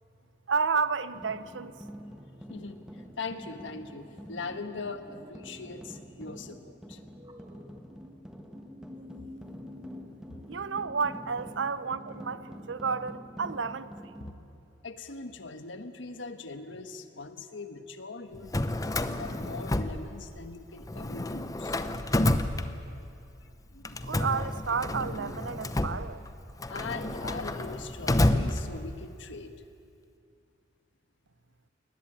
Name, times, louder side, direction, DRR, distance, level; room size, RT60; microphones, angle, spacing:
voice 1, 0.5-1.7 10.5-14.1 24.0-26.2, right 5 dB, 75° right, 0.7 m, -31 dB
sound 1, 1.1-14.3, equal, 5° right, 1.5 m, -47 dB
voice 2, 2.5-2.8 3.2-7.0 10.3-10.5 14.2-14.4 14.8-18.6 19.0-21.8 23.7-24.2 24.8-25.3 26.7-29.5, left 3 dB, 80° left, 1.4 m, -41 dB
sound 2, 4.9-5.4 7.2-8.2 8.5-12.7, left 2 dB, 25° right, 1.8 m, -49 dB
Drawer open or close, 18.3-20.5 20.8-23.2 23.8-29.1, left 1 dB, 20° left, 0.8 m, -30 dB
21.5 x 19.5 x 9.0 m
head